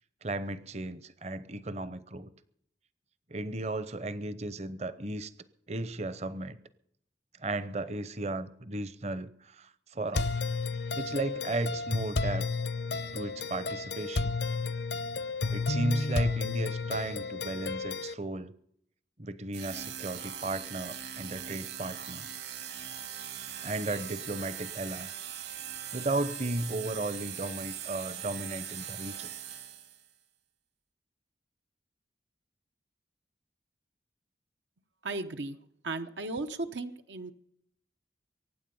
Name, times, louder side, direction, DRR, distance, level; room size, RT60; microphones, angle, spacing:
voice 1, 0.2-2.3 3.3-5.3 5.7-6.6 7.4-10.3 10.9-12.5 12.9-14.4 15.5-18.5 19.2-22.3 23.6-25.1 25.9-29.3, right 2 dB, 35° right, 15 dB, 0.8 m, -35 dB
sound 1, 10.1-18.1, left 3 dB, 75° left, 0.8 m, -32 dB
sound 2, 19.5-30.1, right 9 dB, 70° right, 2.0 m, -41 dB
voice 2, 35.0-35.6 35.8-37.3, right 2 dB, 85° right, 7 dB, 1.0 m, -35 dB
23.5 x 9.4 x 5.5 m, 0.71 s
head